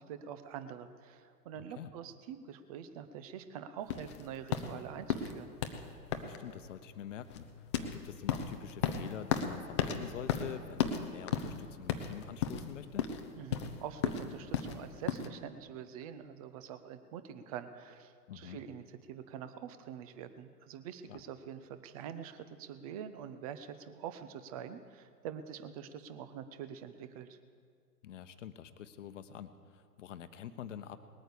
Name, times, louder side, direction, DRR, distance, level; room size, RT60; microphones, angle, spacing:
voice 1, 0.0-5.6 13.4-27.4, right 8 dB, 25° right, 11 dB, 0.6 m, -45 dB
voice 2, 1.5-1.9 6.2-13.1 18.3-18.6 21.1-21.2 28.0-31.0, left 9 dB, 50° left, 11 dB, 1.0 m, -46 dB
sound 1, 3.9-15.3, left 8 dB, 20° left, 0.5 m, -35 dB
20.0 x 9.0 x 6.9 m, 2.1 s
figure-of-eight pair, 120°, 48 cm